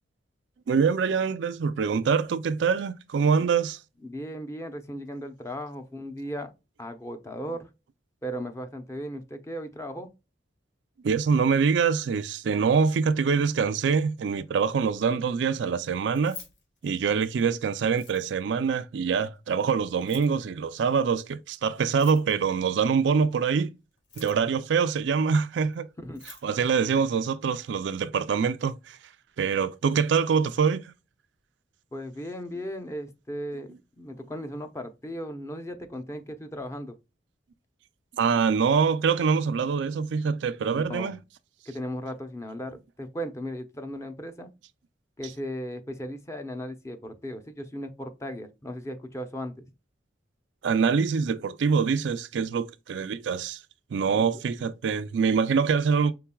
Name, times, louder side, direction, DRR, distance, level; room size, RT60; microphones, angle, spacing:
voice 1, 0.7-3.8 11.0-16.4 16.8-23.7 24.2-25.9 26.4-29.0 29.4-30.8 38.1-41.2 50.6-53.6 53.9-56.1, right 6 dB, 70° right, 0.4 m, -24 dB
voice 2, 4.0-6.5 6.8-7.7 8.2-10.1 26.0-26.2 31.9-37.0 40.7-41.2 41.7-44.5 45.2-49.6 54.1-54.4, equal, 15° left, 0.7 m, -36 dB
Keys jangling, 16.0-17.4 17.9-18.5 19.9-20.4 21.9-22.5 23.9-24.6 25.7-25.8 26.0-26.5, left 5 dB, 75° left, 1.9 m, -47 dB
5.7 x 3.7 x 2.3 m
head